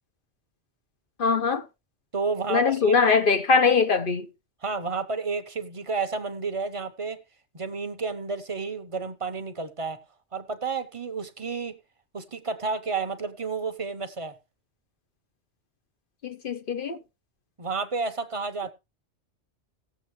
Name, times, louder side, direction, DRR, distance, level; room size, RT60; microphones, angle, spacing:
voice 1, 1.2-1.7 2.5-4.3 16.2-17.0, left 5 dB, 50° left, 1.0 m, -22 dB
voice 2, 2.1-3.1 4.6-7.2 7.5-10.0 10.3-11.8 12.1-14.3 17.6-18.7, right 4 dB, 30° right, 0.9 m, -31 dB
18.0 x 7.4 x 3.1 m
omnidirectional pair, 1.2 m